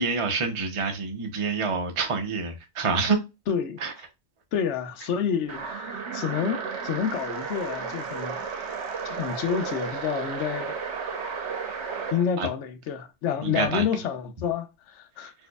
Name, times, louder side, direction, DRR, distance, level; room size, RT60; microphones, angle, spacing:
voice 1, 0.0-3.2 3.8-3.9 12.4-12.5 13.4-13.9 15.2-15.3, right 4 dB, 35° right, 0.5 m, -27 dB
voice 2, 3.5-3.8 4.5-8.4 9.0-10.8 12.1-15.3, left 7 dB, 65° left, 0.9 m, -29 dB
sound 1, 5.5-12.2, right 5 dB, 60° right, 1.0 m, -33 dB
4.5 x 2.6 x 2.2 m
omnidirectional pair, 1.4 m